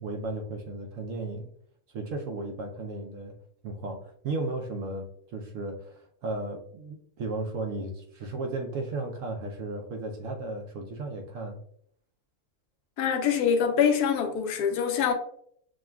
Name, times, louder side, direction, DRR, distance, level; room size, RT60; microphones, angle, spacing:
voice 1, 0.0-1.5 1.9-3.4 3.6-11.6, right 2 dB, 65° right, 0.8 m, -35 dB
voice 2, 13.0-15.1, left 7 dB, 80° left, 1.1 m, -24 dB
6.1 x 2.3 x 2.2 m
omnidirectional pair, 1.6 m